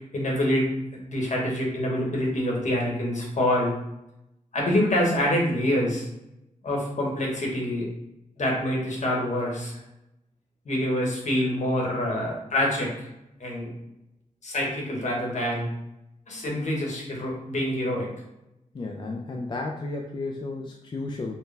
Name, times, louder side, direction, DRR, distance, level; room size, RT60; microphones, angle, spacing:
voice 1, 0.1-3.7 4.5-6.1 6.6-7.9 8.4-9.8 10.6-13.1 13.4-13.7 14.4-15.7 16.3-18.1, left 1 dB, 60° left, -2 dB, 1.2 m, -26 dB
voice 2, 18.7-21.4, left 2 dB, 35° left, 0 dB, 0.4 m, -33 dB
4.5 x 2.2 x 3.3 m, 0.88 s
wide cardioid pair, 115°, 14 cm